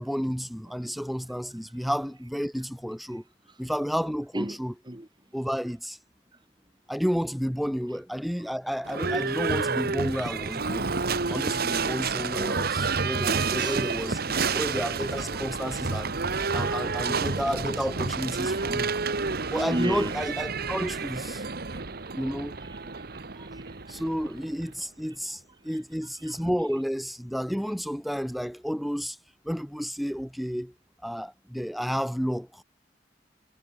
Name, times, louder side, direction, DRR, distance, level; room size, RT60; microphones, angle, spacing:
voice 1, 0.0-3.2 3.6-4.7 5.3-6.0 6.9-10.9 11.3-16.1 16.5-18.9 19.5-21.4 22.1-22.5 23.9-29.2 29.4-30.7 31.0-32.6, equal, ahead, 3.3 m, -31 dB
voice 2, 3.1-3.7 4.0-4.6 4.8-5.1 6.3-6.4 7.9-8.0 13.6-13.9 15.5-15.8 18.5-18.7 19.3-20.2 21.3-24.0 25.0-26.5, right 1 dB, 25° right, 2.5 m, -39 dB
Livestock farm animals working animals / Bell, 8.8-24.7, right 4 dB, 60° right, 1.5 m, -29 dB
head